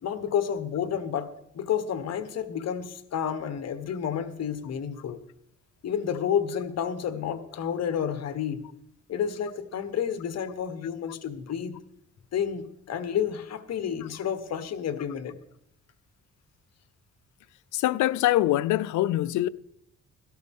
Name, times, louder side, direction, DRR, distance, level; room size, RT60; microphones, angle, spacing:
voice 1, 0.0-5.2 5.8-8.7 9.1-11.8 12.3-15.3, left 8 dB, 60° left, 1.3 m, -30 dB
voice 2, 17.7-19.5, left 15 dB, 75° left, 0.5 m, -24 dB
16.5 x 13.0 x 3.7 m
cardioid pair, 90°, 30 cm